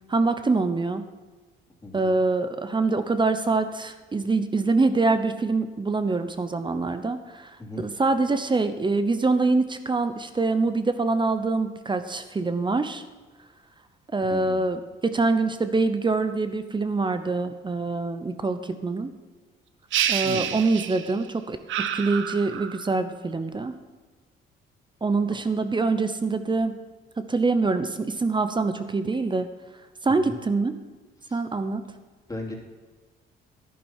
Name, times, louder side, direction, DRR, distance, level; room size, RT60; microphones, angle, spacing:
voice 1, 0.1-1.0 1.9-7.5 7.8-13.0 14.1-19.1 20.1-23.7 25.0-26.8 27.2-29.5 30.0-30.8 31.3-31.8, right 3 dB, 25° right, 10 dB, 0.8 m, -25 dB
sound 1, 19.9-21.3 21.7-23.0, right 10 dB, 75° right, 0.7 m, -28 dB
voice 2, 20.2-20.6 30.1-30.3 31.2-31.4 32.3-32.5, left 2 dB, 15° left, -1 dB, 2.9 m, -36 dB
11.0 x 10.5 x 4.5 m, 1.3 s
cardioid pair, 90°, 20 cm